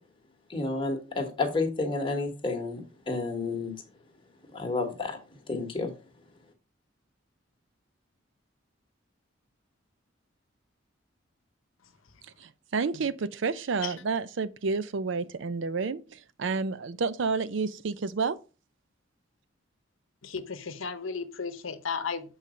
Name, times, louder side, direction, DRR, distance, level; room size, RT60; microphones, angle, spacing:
voice 1, 0.5-3.7 4.5-5.2 5.5-5.9, left 3 dB, 25° left, 1.3 m, -30 dB
voice 2, 12.4-18.4, right 4 dB, 65° right, 0.5 m, -30 dB
voice 3, 20.2-22.2, left 5 dB, 80° left, 0.8 m, -34 dB
7.4 x 4.0 x 5.0 m
head